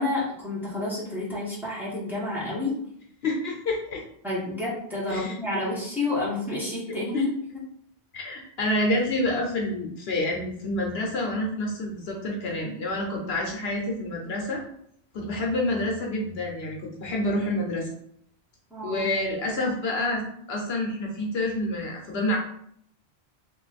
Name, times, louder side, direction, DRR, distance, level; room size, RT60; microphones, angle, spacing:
voice 1, 0.0-2.8 4.2-7.3 18.7-19.1, left 2 dB, ahead, -7 dB, 1.2 m, -29 dB
voice 2, 3.2-4.0 5.1-5.3 7.1-7.2 8.1-14.6 15.1-17.9 18.8-22.4, left 1 dB, 70° left, 0 dB, 1.0 m, -28 dB
3.0 x 2.6 x 4.0 m, 0.68 s
omnidirectional pair, 1.1 m